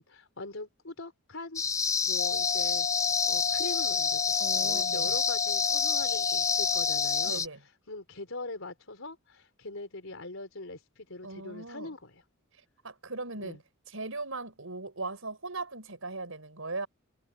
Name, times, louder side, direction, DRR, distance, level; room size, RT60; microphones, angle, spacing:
voice 1, 0.0-1.6 2.1-2.9 3.3-7.4 7.9-12.2 13.4-13.6, left 2 dB, 70° left, 5.0 m, -42 dB
sound 1, 1.6-7.5, left 5 dB, 15° left, 0.3 m, -28 dB
sound 2, 2.2-7.3, left 7 dB, 50° left, 2.6 m, -34 dB
voice 2, 4.4-5.2 7.2-7.6 11.2-11.9 12.8-13.6 13.9-16.9, right 3 dB, 75° right, 6.4 m, -38 dB
head